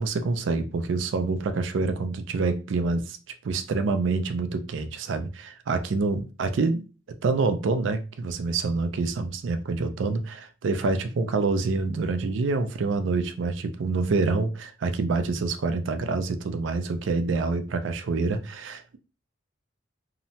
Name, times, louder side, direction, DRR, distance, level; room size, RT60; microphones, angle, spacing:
voice 1, 0.0-3.2 3.4-6.8 7.2-19.0, right 3 dB, 80° right, 0.4 m, -26 dB
2.8 x 2.1 x 2.7 m
head